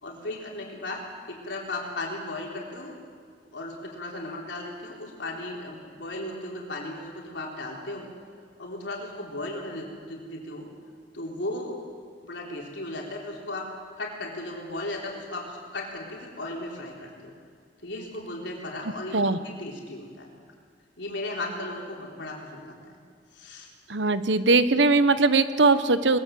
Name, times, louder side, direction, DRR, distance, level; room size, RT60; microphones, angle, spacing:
voice 1, 0.0-1.0 1.3-2.9 3.5-8.1 8.6-10.7 11.1-11.8 12.2-13.7 14.0-17.3 17.8-20.3 21.0-23.0 23.3-23.7, left 2 dB, 80° left, -1 dB, 3.9 m, -36 dB
voice 2, 23.9-26.2, right 3 dB, 80° right, 12 dB, 1.1 m, -20 dB
22.0 x 20.5 x 7.8 m, 2.1 s
head